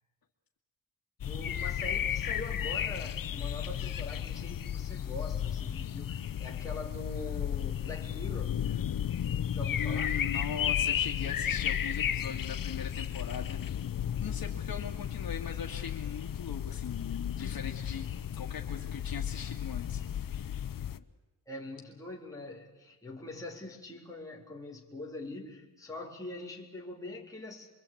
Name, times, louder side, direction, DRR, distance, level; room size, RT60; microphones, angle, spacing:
sound 1, 1.2-21.0, left 9 dB, 70° left, 0.8 m, -34 dB
voice 1, 1.2-8.6 9.5-10.1 17.4-17.5 21.5-27.7, left 2 dB, 10° left, 3.6 m, -43 dB
voice 2, 9.8-13.6 14.1-20.3 20.9-21.0, left 7 dB, 85° left, 2.1 m, -40 dB
25.5 x 23.5 x 8.6 m
wide cardioid pair, 125°, 35 cm